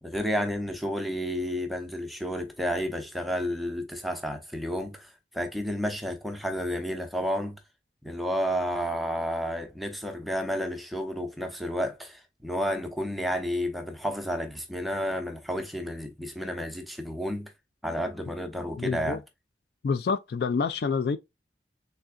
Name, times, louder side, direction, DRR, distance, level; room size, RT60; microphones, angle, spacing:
voice 1, 0.0-7.6 8.0-17.5 17.8-19.2, equal, ahead, 0.6 m, -31 dB
voice 2, 18.8-19.2 19.8-21.2, left 5 dB, 60° left, 0.3 m, -27 dB
3.7 x 3.3 x 2.3 m
head